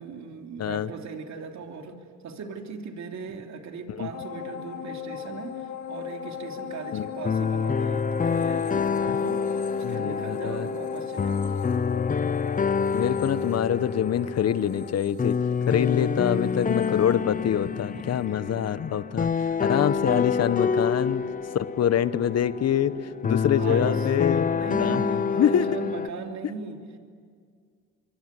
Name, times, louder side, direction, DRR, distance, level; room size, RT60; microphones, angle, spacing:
voice 1, 0.0-9.6 9.9-11.5 15.8-16.1 17.9-18.1 19.1-19.3 23.0-23.1 23.6-24.1 24.5-27.0, right 5 dB, 65° right, 3 dB, 3.2 m, -38 dB
voice 2, 0.6-0.9 3.9-4.1 6.9-7.1 9.8-10.7 12.9-15.4 15.7-19.3 19.6-21.2 21.5-22.9 23.2-24.5 24.8-25.0 25.4-25.7, left 9 dB, 55° left, 15 dB, 1.1 m, -25 dB
sound 1, 4.1-17.8 18.2-18.3, left 7 dB, 75° left, 2.9 m, -38 dB
sound 2, 7.2-26.1, left 6 dB, 25° left, 0.8 m, -27 dB
26.0 x 23.5 x 9.8 m, 2.1 s
cardioid pair, 90°, 30 cm